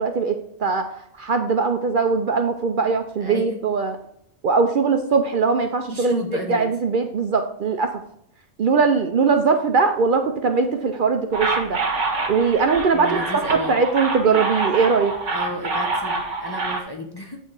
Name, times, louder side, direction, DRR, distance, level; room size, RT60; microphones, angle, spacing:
voice 1, 0.0-4.0 4.4-6.2 6.5-8.0 8.6-12.0 12.3-15.2, right 4 dB, 55° right, 6 dB, 0.6 m, -21 dB
voice 2, 3.2-3.6 5.9-6.7 12.9-13.8 15.3-17.4, left 1 dB, 25° left, 1 dB, 0.6 m, -32 dB
sound 1, 11.3-16.8, right 3 dB, 85° right, 1.6 m, -26 dB
8.9 x 3.2 x 4.7 m, 0.70 s
omnidirectional pair, 1.2 m